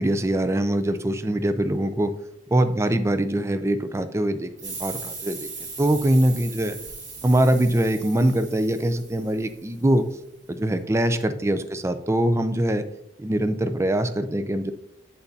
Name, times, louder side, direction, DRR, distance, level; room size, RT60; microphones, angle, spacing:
voice 1, 0.0-2.1 2.5-5.5 5.8-6.8 7.2-10.0 10.5-12.9 13.2-14.7, right 1 dB, 15° right, 10 dB, 0.4 m, -23 dB
sound 1, 4.6-9.9, right 4 dB, 40° right, 1.7 m, -39 dB
10.0 x 3.9 x 2.8 m, 0.82 s
head